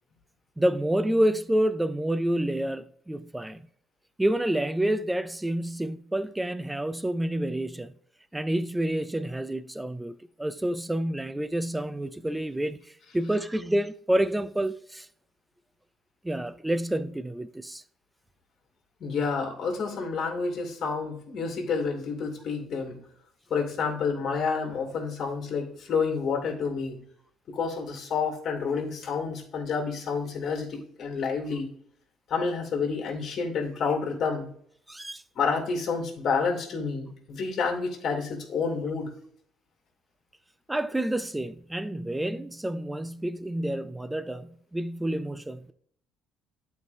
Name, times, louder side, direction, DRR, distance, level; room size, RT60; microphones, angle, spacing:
voice 1, 0.6-3.6 4.2-7.9 8.3-12.8 13.1-15.1 16.2-17.8 34.9-35.2 40.7-45.7, right 1 dB, 5° right, 0.4 m, -28 dB
voice 2, 19.0-23.0 23.5-27.0 27.5-31.7 32.3-34.5 35.3-39.1, left 5 dB, 45° left, 2.5 m, -29 dB
11.5 x 4.6 x 2.6 m
cardioid pair, 150°, 0 cm